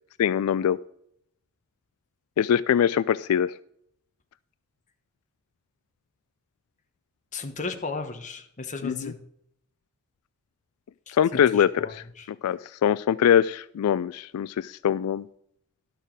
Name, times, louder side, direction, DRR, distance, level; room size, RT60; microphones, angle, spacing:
voice 1, 0.2-0.8 2.4-3.5 8.8-9.1 11.2-12.0 12.4-15.2, left 9 dB, 85° left, 17 dB, 0.3 m, -23 dB
voice 2, 7.3-9.2 11.1-12.3, left 3 dB, 35° left, 6 dB, 1.2 m, -35 dB
12.0 x 6.7 x 4.7 m, 0.72 s
head